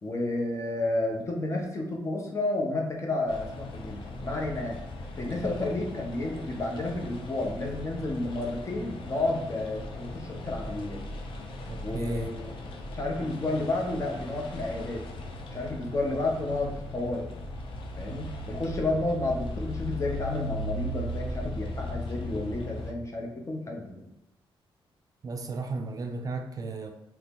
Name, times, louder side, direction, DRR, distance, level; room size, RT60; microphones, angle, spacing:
voice 1, 0.0-4.8 5.2-11.0 11.8-12.5 12.9-15.0 15.5-17.3 18.0-24.0, left 2 dB, 30° left, 1 dB, 0.7 m, -31 dB
sound 1, 3.3-22.9, left 1 dB, 70° left, 0.6 m, -38 dB
voice 2, 11.7-12.3 25.2-26.9, right 3 dB, 40° right, 5 dB, 0.3 m, -34 dB
2.9 x 2.7 x 3.5 m, 0.89 s
cardioid pair, 115°, 9 cm